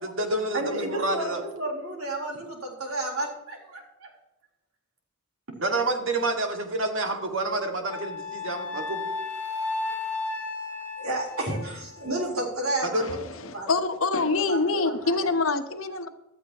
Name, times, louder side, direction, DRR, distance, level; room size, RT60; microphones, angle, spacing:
voice 1, 0.0-1.4 5.6-9.0 12.8-13.1, right 2 dB, 60° right, 2.1 m, -28 dB
voice 2, 0.5-4.1 10.7-13.2 13.5-13.7 14.3-15.3, right 1 dB, 75° right, 4.0 m, -32 dB
Wind instrument woodwind instrument, 7.9-12.2, left 3 dB, 10° left, 2.1 m, -34 dB
voice 3, 13.4-16.1, left 3 dB, 65° left, 1.1 m, -25 dB
15.5 x 13.5 x 3.0 m
head